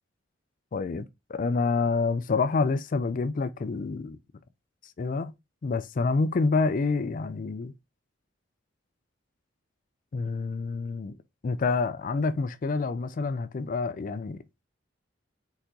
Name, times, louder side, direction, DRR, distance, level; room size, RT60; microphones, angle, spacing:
voice 1, 0.7-4.2 5.0-5.3 5.6-7.7 10.1-11.2 11.4-14.6, left 4 dB, 45° left, 0.4 m, -28 dB
4.4 x 3.9 x 2.9 m
head